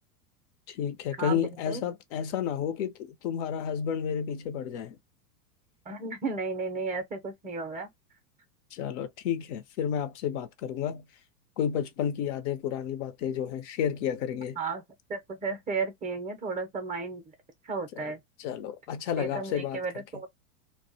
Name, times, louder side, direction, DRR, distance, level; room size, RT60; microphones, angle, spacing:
voice 1, 0.7-5.0 8.7-11.0 11.6-14.6 18.0-18.1 18.4-19.8, left 8 dB, 50° left, 0.5 m, -31 dB
voice 2, 1.2-1.8 5.9-7.9 14.6-14.8 15.1-17.2 17.6-18.2 19.2-20.3, right 4 dB, 15° right, 0.5 m, -34 dB
2.3 x 2.1 x 2.6 m
hypercardioid pair, 100°, 47 cm